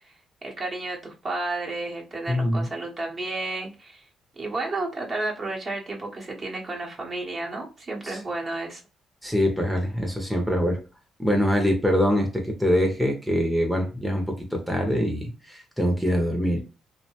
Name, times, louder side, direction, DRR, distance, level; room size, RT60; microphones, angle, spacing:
voice 1, 0.4-4.0 4.4-8.8, right 2 dB, 40° right, -1 dB, 0.9 m, -32 dB
voice 2, 2.3-2.7 8.0-8.2 9.2-10.8 11.2-16.6, equal, ahead, 1 dB, 0.7 m, -24 dB
2.6 x 2.1 x 2.8 m, 0.31 s
cardioid pair, 90°, 0 cm